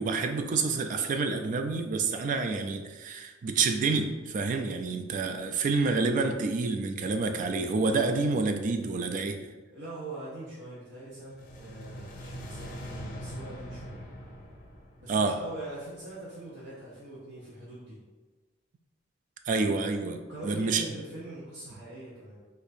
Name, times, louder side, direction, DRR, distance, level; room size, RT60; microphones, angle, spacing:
voice 1, 0.0-9.4 15.1-15.4 19.5-20.8, right 4 dB, 45° right, 6 dB, 0.3 m, -28 dB
voice 2, 9.7-14.0 15.0-18.0 20.3-22.4, right 2 dB, 65° right, -10 dB, 0.9 m, -43 dB
sound 1, 11.1-16.3, equal, 45° left, 0.5 m, -43 dB
4.3 x 2.5 x 2.6 m, 1.3 s
head